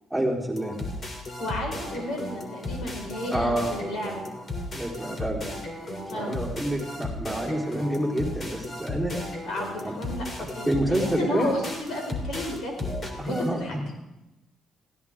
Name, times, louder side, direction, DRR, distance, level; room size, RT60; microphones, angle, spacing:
voice 1, 0.1-0.8 3.3-3.7 4.7-5.4 6.1-9.1 9.8-10.0 10.4-11.5 13.2-13.8, right 1 dB, ahead, -4 dB, 4.0 m, -28 dB
sound 1, 0.6-13.5, left 1 dB, 35° left, 3.2 m, -35 dB
voice 2, 1.4-4.2 6.1-6.4 9.4-10.3 10.5-12.7 13.2-13.8, left 1 dB, 75° left, 1 dB, 5.1 m, -32 dB
21.5 x 16.0 x 3.7 m, 0.96 s
cardioid pair, 105°, 0 cm